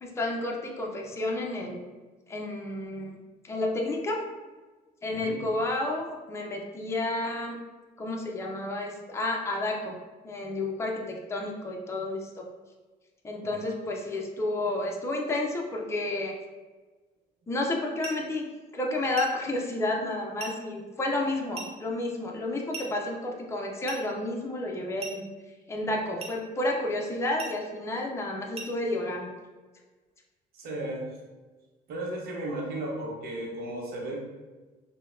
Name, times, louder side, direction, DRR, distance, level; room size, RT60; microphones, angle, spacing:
voice 1, 0.0-1.8 2.3-3.2 3.4-4.2 5.0-7.6 8.0-9.9 10.2-12.4 13.2-16.3 17.5-18.5 18.7-25.3 25.7-29.3, left 2 dB, 15° left, 0 dB, 0.5 m, -31 dB
voice 2, 5.1-5.4 13.4-13.7 30.5-31.0 31.9-34.2, right 1 dB, 65° right, -2 dB, 0.8 m, -35 dB
sound 1, 18.0-18.3 19.2-19.4 20.4-20.6 21.5-21.8 22.7-23.0 23.9-24.1 25.0-25.3 26.2-26.4 27.4-27.6 28.5-28.8, right 3 dB, 35° right, 0.6 m, -39 dB
3.8 x 2.0 x 2.5 m, 1.3 s
cardioid pair, 110°, 17 cm